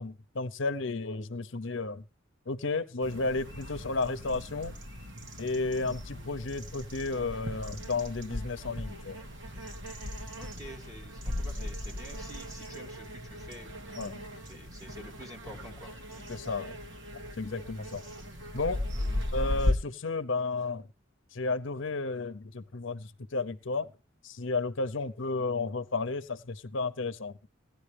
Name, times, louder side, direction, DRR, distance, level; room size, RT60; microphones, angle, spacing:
voice 1, 0.0-2.0 2.5-4.8 5.4-9.2 14.0-14.2 16.3-16.7 17.4-18.0 18.5-18.8 19.3-20.9 21.3-23.9 24.2-27.4, left 3 dB, 65° left, 0.8 m, -33 dB
sound 1, 3.0-19.7, left 1 dB, 65° right, 1.9 m, -37 dB
voice 2, 10.3-13.7 14.4-15.9 18.9-19.2, equal, 15° right, 3.0 m, -48 dB
17.0 x 10.5 x 3.4 m
head